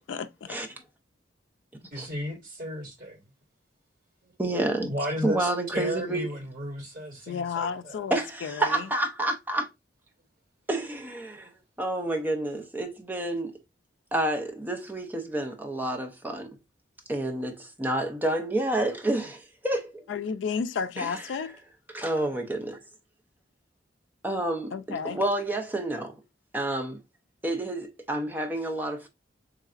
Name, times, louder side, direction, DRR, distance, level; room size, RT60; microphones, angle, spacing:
voice 1, 0.1-0.5 7.3-8.9 20.1-21.6 24.7-25.2, left 6 dB, 90° left, 0.3 m, -32 dB
voice 2, 1.9-3.2 4.9-8.0, equal, 50° right, 2.0 m, -34 dB
voice 3, 4.4-4.9 5.2-6.3 8.1-9.7 10.7-11.5 11.8-13.6 14.1-16.6 17.1-20.0 21.0-21.3 21.9-22.8 24.2-26.2 26.5-27.0 27.4-29.1, right 1 dB, 10° right, 0.5 m, -29 dB
3.8 x 3.2 x 2.4 m
head